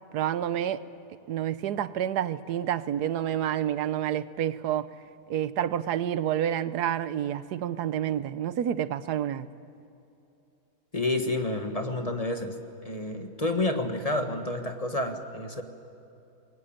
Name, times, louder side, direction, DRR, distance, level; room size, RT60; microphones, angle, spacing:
voice 1, 0.1-0.8 1.3-4.9 5.3-9.5, right 10 dB, 85° right, 1.3 m, -29 dB
voice 2, 10.9-12.6 12.8-15.6, left 2 dB, 25° left, 1.5 m, -29 dB
28.0 x 22.0 x 8.9 m
omnidirectional pair, 1.7 m